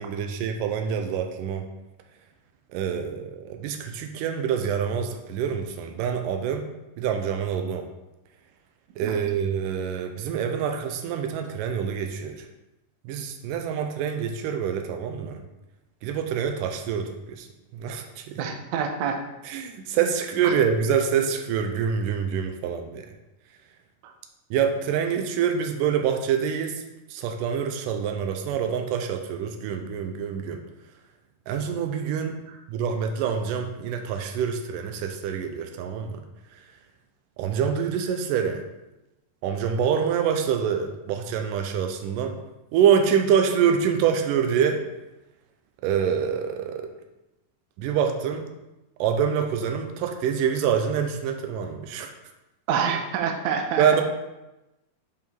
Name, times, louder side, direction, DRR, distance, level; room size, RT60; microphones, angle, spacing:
voice 1, 0.0-1.6 2.7-6.7 7.0-7.8 9.0-12.5 13.1-15.4 16.0-17.5 17.7-18.4 19.4-23.0 24.5-26.7 27.1-30.6 31.5-32.4 32.7-36.1 37.4-38.6 39.4-42.4 42.7-44.8 45.8-46.9 47.8-48.4 49.0-52.1 53.8-54.0, right 7 dB, 90° right, 5 dB, 2.2 m, -26 dB
voice 2, 18.4-19.2 20.4-20.5 24.0-24.1 52.7-53.9, right 7 dB, 75° right, 4 dB, 2.0 m, -27 dB
8.0 x 4.9 x 3.5 m, 0.98 s
omnidirectional pair, 3.8 m